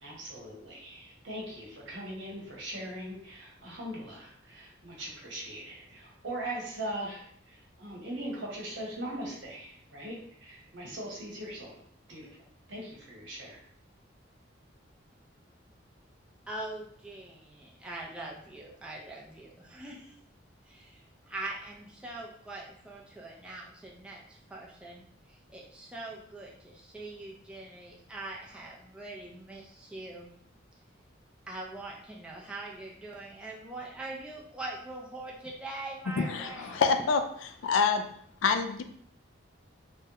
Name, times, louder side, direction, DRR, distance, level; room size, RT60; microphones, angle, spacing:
voice 1, 0.0-11.8 12.1-12.3 12.7-13.6, right 1 dB, 75° right, -3 dB, 1.0 m, -40 dB
voice 2, 16.5-20.1 20.7-30.3 31.5-36.8, right 2 dB, 5° right, -3 dB, 0.4 m, -42 dB
voice 3, 36.2-37.2 37.6-38.0 38.4-38.8, left 5 dB, 80° left, 8 dB, 0.3 m, -26 dB
3.4 x 2.1 x 2.8 m, 0.64 s
head